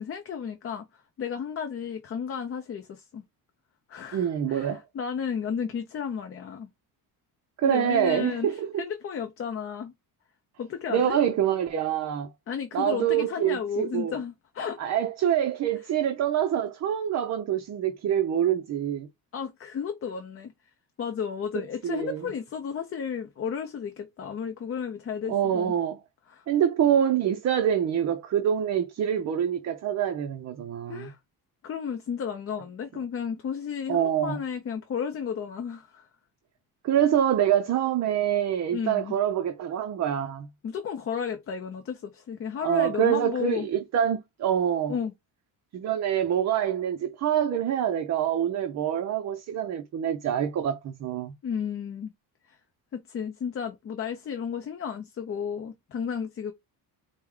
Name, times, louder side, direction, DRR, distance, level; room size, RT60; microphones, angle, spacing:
voice 1, 0.0-3.2 3.9-6.7 7.6-9.9 10.6-11.2 12.5-14.8 19.3-20.5 21.0-25.7 26.3-26.4 30.9-31.2 31.6-36.1 38.7-39.1 40.6-43.7 44.9-45.1 51.4-52.1 52.5-52.6 52.9-56.5, left 7 dB, 35° left, 0.5 m, -33 dB
voice 2, 4.1-4.8 7.6-8.8 10.9-12.3 12.7-14.2 14.8-19.1 21.8-22.2 25.3-26.0 26.5-31.1 33.9-34.4 36.8-40.5 42.6-44.9 45.7-51.3, right 9 dB, 45° right, 0.5 m, -26 dB
4.5 x 2.2 x 3.5 m
cardioid pair, 160°, 40 cm